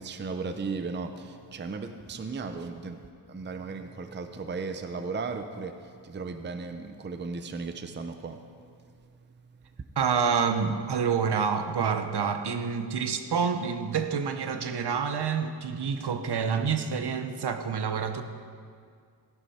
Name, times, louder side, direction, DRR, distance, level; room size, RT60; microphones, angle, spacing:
voice 1, 0.0-8.4 9.8-9.9, right 4 dB, 25° right, 8 dB, 0.5 m, -36 dB
voice 2, 10.0-18.2, right 6 dB, 60° right, 7 dB, 0.8 m, -28 dB
15.0 x 11.0 x 4.2 m, 2.2 s
wide cardioid pair, 140°, 44 cm